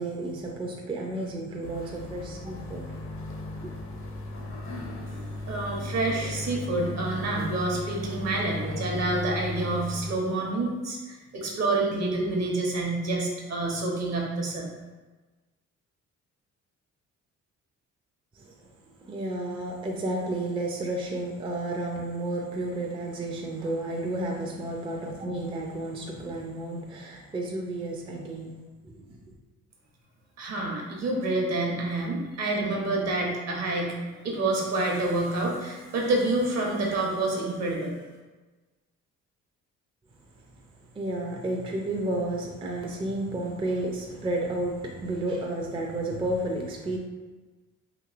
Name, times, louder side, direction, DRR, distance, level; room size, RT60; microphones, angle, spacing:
voice 1, 0.0-3.0 3.6-3.7 18.3-18.6 19.0-28.5 28.8-29.3 40.5-40.6 40.9-47.0, right 1 dB, 20° right, 0 dB, 0.4 m, -32 dB
sound 1, 1.6-10.2, left 2 dB, 45° left, 0.5 m, -36 dB
voice 2, 5.1-14.7 30.4-38.0, right 2 dB, 60° right, -1 dB, 0.8 m, -28 dB
3.0 x 2.8 x 2.4 m, 1.3 s
cardioid pair, 90°, 30 cm